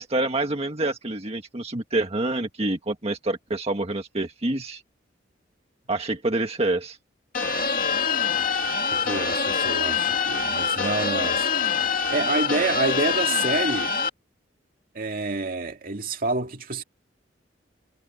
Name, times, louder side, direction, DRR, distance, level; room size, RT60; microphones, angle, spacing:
voice 1, 0.0-4.8 5.9-7.0, right 2 dB, 35° right, 1.7 m, -27 dB
sound 1, 7.3-14.1, left 5 dB, 50° left, 2.5 m, -25 dB
voice 2, 8.9-13.9 14.9-16.8, right 3 dB, 50° right, 2.2 m, -28 dB
head